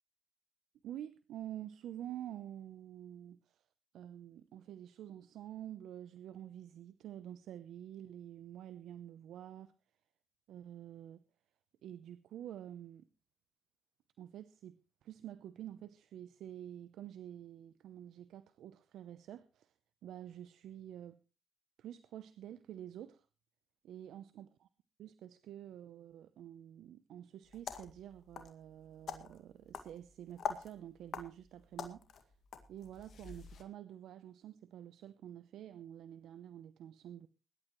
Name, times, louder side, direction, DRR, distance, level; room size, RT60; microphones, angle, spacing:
voice 1, 0.8-3.6 3.9-9.7 10.5-11.2 11.8-13.1 14.2-14.8 15.0-19.7 20.0-21.2 21.8-23.2 23.8-24.5 25.0-32.3 32.7-37.3, right 11 dB, 80° right, 0.7 m, -48 dB
sound 1, 27.5-33.6, left 7 dB, 70° left, 2.1 m, -46 dB
21.5 x 12.0 x 3.1 m
supercardioid pair, 50°, 0 cm